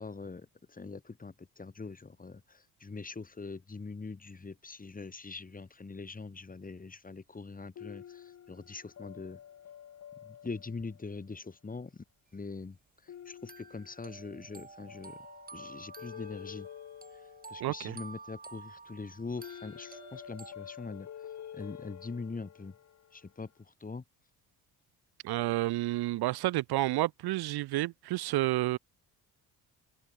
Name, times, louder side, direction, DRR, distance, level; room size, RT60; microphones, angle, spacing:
voice 1, 0.0-9.4 10.2-12.0 12.3-15.3 15.5-16.7 17.1-22.8 23.1-24.0, left 4 dB, 20° left, 6.2 m, -43 dB
sound 1, 7.8-11.2 13.1-14.6 14.9-18.2 19.4-23.3, left 9 dB, 45° left, 1.6 m, -49 dB
sound 2, 12.5-12.6 13.5-20.5, right 4 dB, 25° right, 6.1 m, -50 dB
voice 2, 17.6-18.0 25.2-28.8, right 17 dB, 80° right, 1.8 m, -30 dB
cardioid pair, 115°, 38 cm